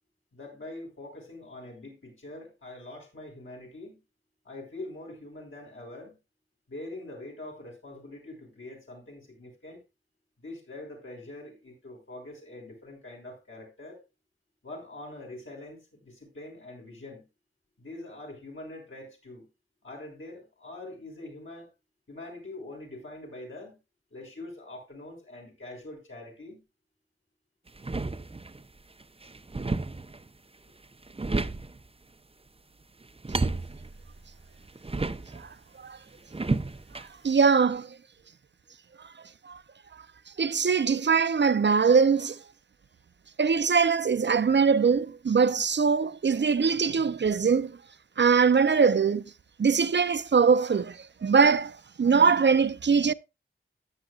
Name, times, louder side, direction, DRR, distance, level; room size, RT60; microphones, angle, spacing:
voice 1, 0.3-4.0 4.4-6.1 6.7-9.8 10.4-14.0 14.6-17.3 17.8-19.5 19.8-21.7 22.1-23.8 24.1-26.6, left 2 dB, 65° left, 6.6 m, -44 dB
sound 1, 27.7-28.6 29.0-30.3 30.8-31.9 33.0-35.5 36.3-37.1, right 3 dB, 25° right, 0.7 m, -32 dB
voice 2, 37.2-38.0 39.4-39.6 40.4-42.4 43.4-47.8 48.2-49.2 49.6-53.1, right 5 dB, 60° right, 0.6 m, -22 dB
14.0 x 10.0 x 2.4 m
wide cardioid pair, 70°, 21 cm